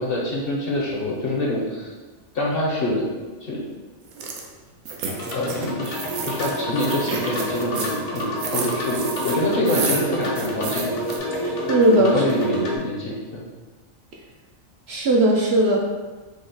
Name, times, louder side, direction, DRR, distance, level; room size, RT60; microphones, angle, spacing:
voice 1, 0.0-1.9 2.3-3.1 3.4-3.6 5.3-6.0 6.3-10.9 12.0-13.4, left 1 dB, 55° left, -3 dB, 0.7 m, -25 dB
sound 1, 4.1-4.4 4.9-11.2, right 4 dB, 80° right, 1.0 m, -30 dB
sound 2, 5.1-12.8, equal, 90° left, 1.2 m, -29 dB
voice 2, 11.4-12.1 14.9-15.8, right 1 dB, 65° right, -2 dB, 0.7 m, -18 dB
4.8 x 2.1 x 3.9 m, 1.3 s
omnidirectional pair, 1.4 m